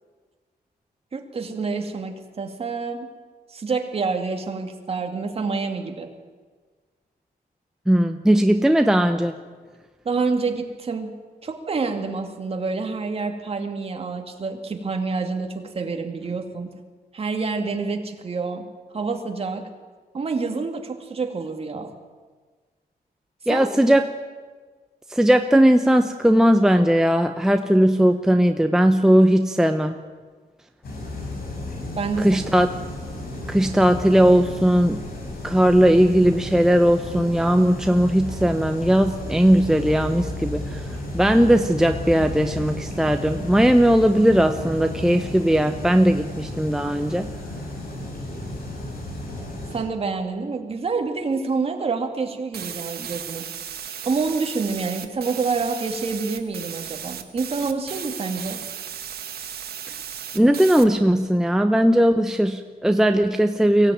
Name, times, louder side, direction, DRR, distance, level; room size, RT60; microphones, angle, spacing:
voice 1, 1.1-3.1 3.5-6.1 10.0-11.1 11.4-16.7 17.1-18.6 18.9-19.7 20.1-21.9 23.5-23.7 32.0-32.4 49.7-53.4 54.0-58.6, right 4 dB, 40° right, 4 dB, 2.5 m, -27 dB
voice 2, 7.9-9.3 23.5-24.1 25.1-30.0 32.2-32.7 33.5-35.0 35.4-47.3 60.3-63.9, equal, 5° right, 6 dB, 0.8 m, -18 dB
sound 1, 30.8-49.8, left 1 dB, 75° left, 7.4 m, -33 dB
sound 2, 52.5-60.9, right 8 dB, 85° right, 1.6 m, -35 dB
23.5 x 17.0 x 9.3 m, 1.4 s
wide cardioid pair, 150°, 16 cm